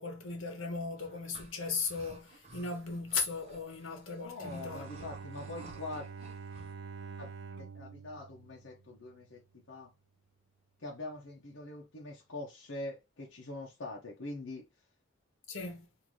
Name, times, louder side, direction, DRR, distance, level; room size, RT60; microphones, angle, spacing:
voice 1, 0.0-4.9 15.5-15.9, left 4 dB, 90° left, 1.3 m, -37 dB
sound 1, 1.0-6.7, right 2 dB, 35° right, 1.0 m, -54 dB
voice 2, 4.2-6.1 7.2-7.3 7.5-9.4 9.7-9.9 10.8-14.6, left 2 dB, 75° left, 1.0 m, -43 dB
Bowed string instrument, 4.4-9.4, right 5 dB, 60° right, 0.5 m, -47 dB
3.9 x 2.8 x 3.1 m
head